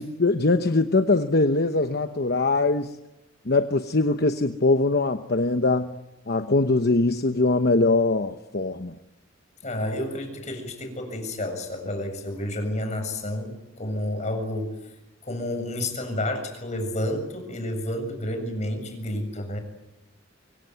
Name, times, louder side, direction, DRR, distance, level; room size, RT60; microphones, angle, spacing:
voice 1, 0.0-2.9 3.5-5.9 6.3-9.0, left 3 dB, 50° left, 8 dB, 1.0 m, -22 dB
voice 2, 9.6-13.5 13.8-14.7 15.2-19.6, left 1 dB, 35° left, 6 dB, 7.3 m, -30 dB
25.5 x 23.5 x 9.4 m, 0.94 s
head